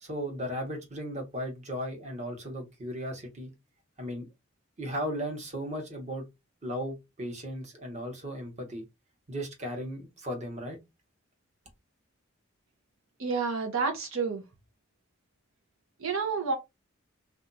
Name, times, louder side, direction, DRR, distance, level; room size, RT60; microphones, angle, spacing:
voice 1, 0.0-3.5 4.0-4.3 4.8-6.3 6.6-8.8 9.3-10.8, equal, 35° right, 1.1 m, -36 dB
voice 2, 13.2-14.4 16.0-16.6, right 4 dB, 75° right, 0.7 m, -29 dB
2.6 x 2.3 x 3.9 m
head